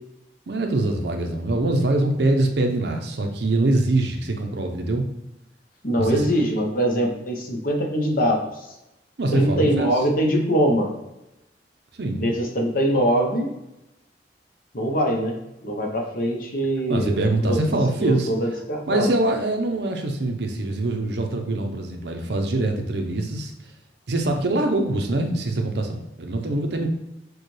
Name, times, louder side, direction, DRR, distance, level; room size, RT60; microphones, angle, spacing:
voice 1, 0.5-5.1 5.9-6.2 9.2-9.9 12.0-12.3 16.9-18.3 18.9-23.5 24.1-26.9, right 2 dB, 65° right, 4 dB, 0.6 m, -23 dB
voice 2, 5.8-8.7 9.3-10.9 12.2-13.5 14.7-17.6 18.0-19.1, equal, 50° left, 0 dB, 0.9 m, -23 dB
6.5 x 2.3 x 3.2 m, 0.92 s
head